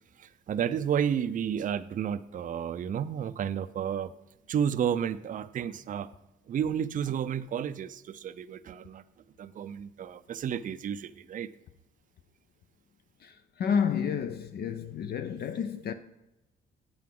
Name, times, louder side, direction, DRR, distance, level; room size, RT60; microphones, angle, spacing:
voice 1, 0.2-4.1 4.5-6.1 6.5-9.0 9.4-11.5, right 8 dB, 40° right, 0.4 m, -31 dB
voice 2, 13.2-15.9, left 7 dB, 55° left, 0.5 m, -30 dB
8.4 x 7.6 x 3.7 m
cardioid pair, 90°, 20 cm